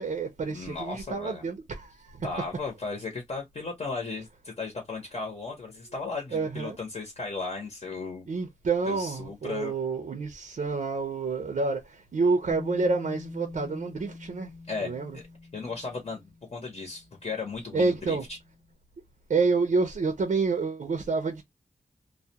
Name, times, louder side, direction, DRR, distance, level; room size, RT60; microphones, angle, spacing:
voice 1, 0.0-2.3 6.3-6.8 8.3-14.5 14.8-15.2 17.7-18.2 19.3-21.4, right 4 dB, 60° right, 0.6 m, -28 dB
voice 2, 0.5-1.4 2.2-8.3 8.9-9.7 14.7-15.2 15.5-18.4, left 4 dB, 50° left, 0.8 m, -36 dB
Bass guitar, 12.5-18.6, left 3 dB, 30° left, 0.5 m, -45 dB
2.2 x 2.2 x 2.7 m
wide cardioid pair, 135°, 15 cm